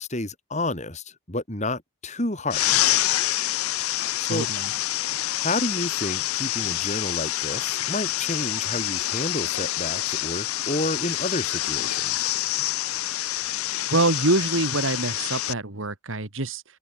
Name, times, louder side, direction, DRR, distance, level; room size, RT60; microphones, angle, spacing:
voice 1, 0.0-2.9 4.2-4.5 5.4-12.3, left 2 dB, 30° left, 3.9 m, -30 dB
sound 1, 2.5-15.5, left 14 dB, 80° left, 0.6 m, -27 dB
voice 2, 4.2-4.7 13.9-16.6, right 2 dB, 65° right, 2.2 m, -25 dB
head